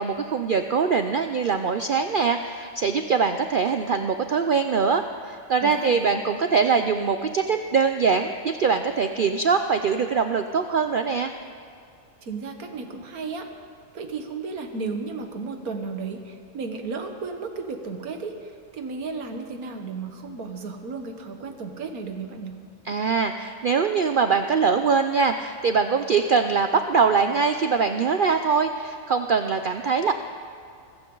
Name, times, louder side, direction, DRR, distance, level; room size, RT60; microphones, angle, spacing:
voice 1, 0.0-11.3 22.9-30.1, right 5 dB, 60° right, 7 dB, 0.5 m, -23 dB
voice 2, 5.6-6.1 12.2-13.5 13.9-22.6, right 4 dB, 85° right, 5 dB, 1.8 m, -34 dB
25.0 x 15.0 x 3.9 m, 2.4 s
omnidirectional pair, 1.5 m